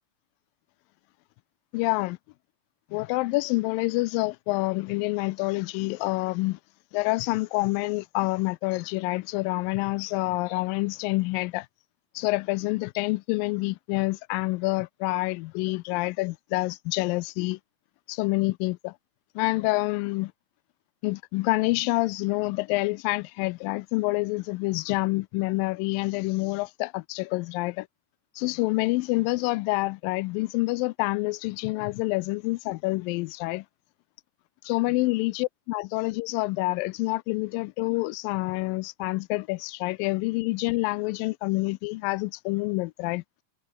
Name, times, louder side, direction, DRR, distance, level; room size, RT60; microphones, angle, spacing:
voice 1, 1.7-2.2 2.9-6.6 6.9-11.7 12.2-17.6 18.1-18.9 19.4-20.3 21.0-27.9 28.4-33.7 34.7-43.4, left 23 dB, 90° left, 2.3 m, -27 dB
omnidirectional pair, 3.9 m